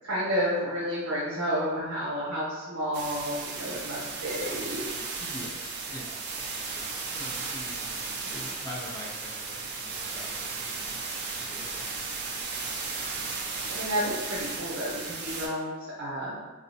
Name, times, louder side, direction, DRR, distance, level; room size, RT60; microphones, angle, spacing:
voice 1, 0.0-4.8 13.6-15.7 16.0-16.4, equal, 70° right, -8 dB, 0.9 m, -31 dB
sound 1, 2.9-15.5, right 4 dB, 50° right, 0.4 m, -35 dB
voice 2, 5.2-5.6 5.9-6.2 6.7-11.0 11.5-11.8, left 1 dB, 15° left, -4 dB, 0.4 m, -44 dB
2.6 x 2.0 x 2.6 m, 1.2 s
head